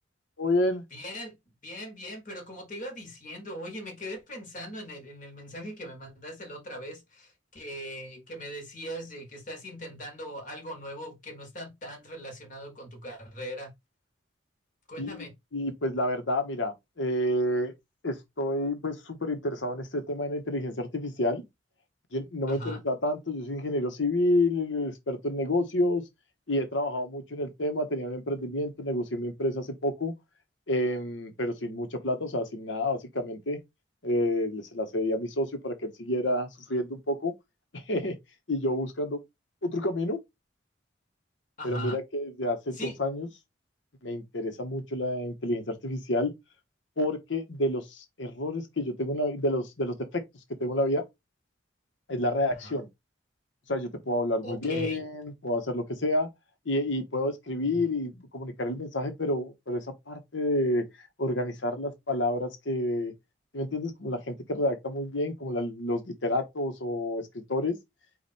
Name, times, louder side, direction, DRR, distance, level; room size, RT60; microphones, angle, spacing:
voice 1, 0.4-0.8 15.0-15.2 15.5-17.7 18.0-21.4 22.1-26.0 26.5-30.1 30.7-33.6 34.0-37.3 37.7-38.2 38.5-39.2 39.6-40.2 41.6-43.3 44.0-46.3 47.0-50.2 50.6-51.0 52.1-52.9 53.7-56.3 56.6-60.8 61.2-63.1 63.5-67.7, left 1 dB, 75° left, 1.2 m, -29 dB
voice 2, 0.9-1.4 1.6-13.7 14.9-15.3 22.5-22.8 41.6-42.0 42.7-43.0 52.6-52.8 54.4-55.0 57.7-57.9, equal, 45° left, 1.6 m, -40 dB
4.9 x 2.5 x 4.2 m
head